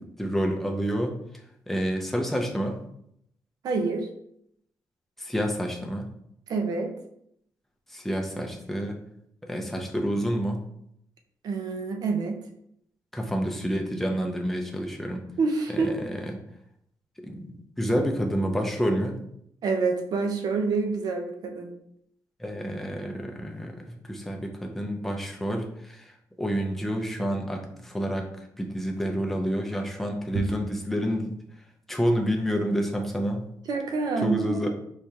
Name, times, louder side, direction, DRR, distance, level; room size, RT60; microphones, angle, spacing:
voice 1, 0.2-1.2 1.7-2.8 5.2-6.1 7.9-9.0 9.4-10.6 13.1-15.2 15.7-16.1 17.2-17.5 17.8-19.2 22.4-23.8 24.1-26.1 26.4-28.3 28.6-31.3 31.9-33.4 34.2-34.7, equal, 5° left, 2 dB, 0.5 m, -28 dB
voice 2, 3.6-4.1 6.5-6.9 11.4-12.4 15.4-16.0 19.6-21.7 30.3-30.4 33.7-34.6, right 4 dB, 60° right, 4 dB, 0.7 m, -27 dB
4.8 x 3.3 x 2.8 m, 0.72 s
wide cardioid pair, 170°, 7 cm